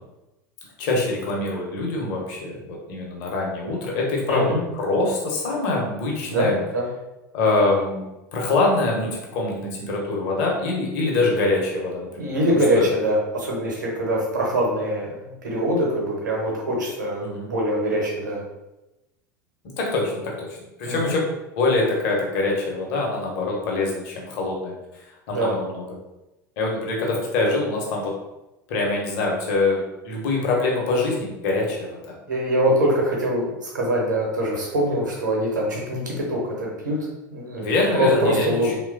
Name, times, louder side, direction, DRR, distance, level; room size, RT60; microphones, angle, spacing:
voice 1, 0.8-6.6 7.3-8.0 8.3-12.9 17.2-17.5 19.8-21.2 21.6-24.7 25.3-25.8 26.6-28.1 28.7-32.1 37.6-38.7, left 2 dB, 50° left, -2 dB, 0.7 m, -24 dB
voice 2, 4.3-4.6 6.3-6.9 12.2-18.4 20.8-21.2 25.3-25.6 32.3-37.6 37.9-38.7, right 1 dB, 75° right, -2 dB, 0.8 m, -23 dB
3.0 x 2.1 x 2.4 m, 0.97 s
figure-of-eight pair, 75°, 10 cm